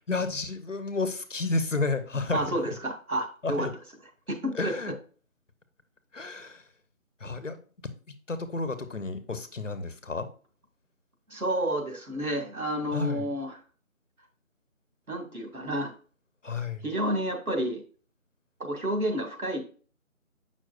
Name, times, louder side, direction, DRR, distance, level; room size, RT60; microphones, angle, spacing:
voice 1, 0.1-2.4 3.4-3.7 4.5-4.9 6.1-6.6 7.2-7.6 8.3-10.3 12.9-13.3 16.4-16.8, left 3 dB, 60° left, 11 dB, 1.1 m, -31 dB
voice 2, 2.3-3.7 4.4-4.9 11.3-13.6 15.1-15.9 16.8-17.8 18.6-19.6, right 1 dB, 80° right, 3 dB, 2.4 m, -30 dB
7.9 x 6.0 x 2.5 m, 0.39 s
figure-of-eight pair, 180°, 42 cm